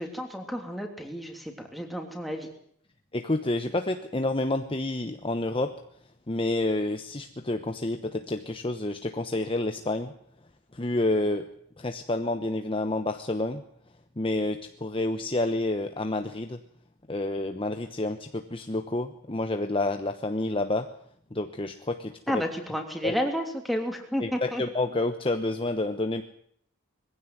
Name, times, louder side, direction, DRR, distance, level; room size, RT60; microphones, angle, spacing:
voice 1, 0.0-2.5 22.3-24.6, equal, ahead, 2 dB, 3.2 m, -31 dB
voice 2, 3.1-5.7 6.3-10.1 10.7-11.5 11.8-13.6 14.2-16.6 17.1-20.9 21.3-22.4 23.0-23.1 24.2-26.2, left 2 dB, 25° left, 7 dB, 1.0 m, -29 dB
21.5 x 16.0 x 9.4 m, 0.65 s
head